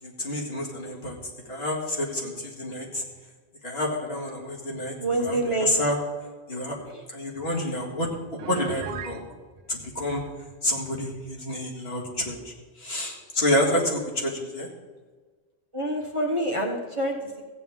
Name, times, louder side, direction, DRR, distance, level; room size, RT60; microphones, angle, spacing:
voice 1, 0.0-1.2 1.5-3.0 3.6-6.0 6.5-6.8 7.1-9.3 9.7-10.2 10.6-14.7, left 1 dB, 55° left, -2 dB, 2.2 m, -29 dB
voice 2, 5.0-5.7 15.7-17.4, right 1 dB, 25° right, -1 dB, 1.0 m, -27 dB
Piano, 8.4-9.2, right 8 dB, 85° right, 1.0 m, -37 dB
15.0 x 9.0 x 3.6 m, 1.4 s
omnidirectional pair, 1.2 m